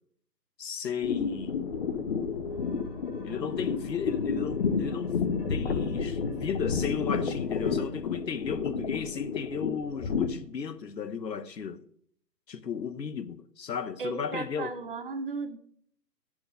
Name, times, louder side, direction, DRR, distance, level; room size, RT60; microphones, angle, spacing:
voice 1, 0.6-1.7 3.2-11.8 12.5-14.8, left 7 dB, 90° left, 1.1 m, -35 dB
sound 1, 1.0-10.3, left 5 dB, 35° left, 1.0 m, -31 dB
sound 2, 2.5-8.0, left 2 dB, 70° left, 3.6 m, -50 dB
voice 2, 14.0-15.6, right 4 dB, 35° right, 0.8 m, -35 dB
11.0 x 7.8 x 5.0 m
hypercardioid pair, 155°, 49 cm